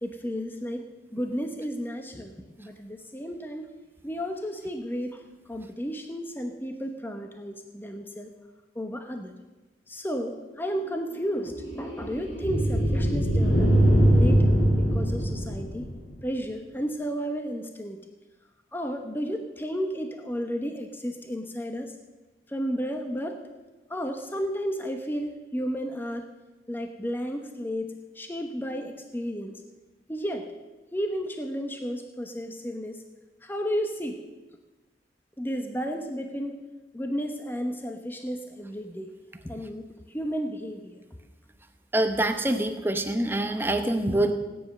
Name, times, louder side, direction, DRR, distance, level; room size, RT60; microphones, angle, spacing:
voice 1, 0.0-2.3 2.6-3.7 4.0-5.2 5.5-8.3 8.7-9.3 9.9-13.7 14.1-15.8 16.2-18.0 18.7-21.9 22.5-23.4 23.9-26.2 26.7-29.6 30.1-30.5 30.9-33.0 33.4-34.2 35.4-36.6 36.9-39.1 39.4-39.8 40.1-41.0 44.1-44.2, equal, 10° left, 5 dB, 1.0 m, -33 dB
sound 1, 10.6-16.2, right 1 dB, 75° left, 4.3 m, -23 dB
voice 2, 41.9-44.4, right 1 dB, 10° right, 7 dB, 0.9 m, -25 dB
17.0 x 9.8 x 6.6 m, 1.2 s
head